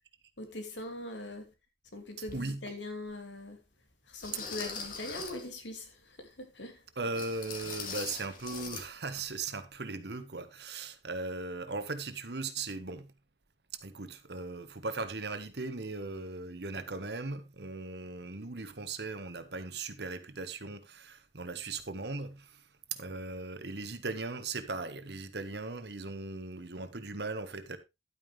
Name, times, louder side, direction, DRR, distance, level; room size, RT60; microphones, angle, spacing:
voice 1, 0.4-1.5 1.9-3.6 4.0-6.9, left 2 dB, 80° left, 2.6 m, -42 dB
voice 2, 2.2-2.6 7.0-13.1 13.7-27.8, right 3 dB, 65° right, 1.3 m, -38 dB
sound 1, 2.3-2.4 3.1-3.2 4.2-5.5 7.1-8.9 9.1-9.3 9.7-9.8, left 5 dB, 50° left, 2.1 m, -41 dB
11.5 x 9.0 x 3.3 m
head